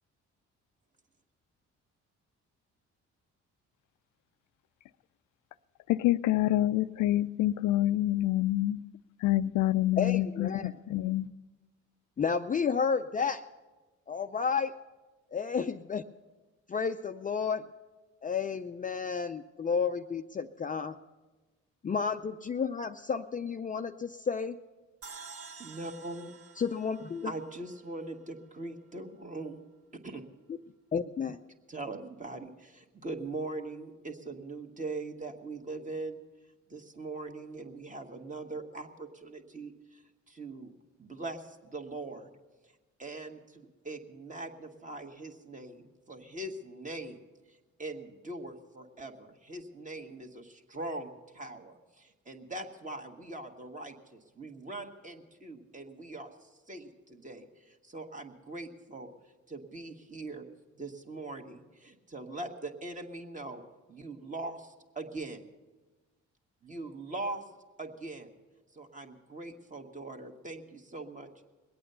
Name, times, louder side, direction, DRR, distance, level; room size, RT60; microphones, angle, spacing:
voice 1, 5.9-8.8 9.2-11.3, left 15 dB, 80° left, 14 dB, 0.5 m, -27 dB
voice 2, 10.0-10.7 12.2-13.4 14.1-14.7 15.3-16.0 16.7-17.7 18.2-21.0 21.8-24.6 26.6-27.3 30.9-31.4, left 6 dB, 25° left, 7 dB, 0.5 m, -31 dB
sound 1, 25.0-28.3, right 5 dB, 50° right, 1.5 m, -50 dB
voice 3, 25.6-26.3 27.2-29.6 30.0-30.2 31.7-36.2 36.7-40.7 41.0-42.3 43.0-47.2 47.8-59.1 59.5-60.4 60.7-63.6 63.9-65.4 66.6-67.4 67.8-68.3 68.7-71.3, right 2 dB, 25° right, 4 dB, 1.6 m, -41 dB
21.0 x 8.7 x 6.8 m, 1.2 s
cardioid pair, 90°, 30 cm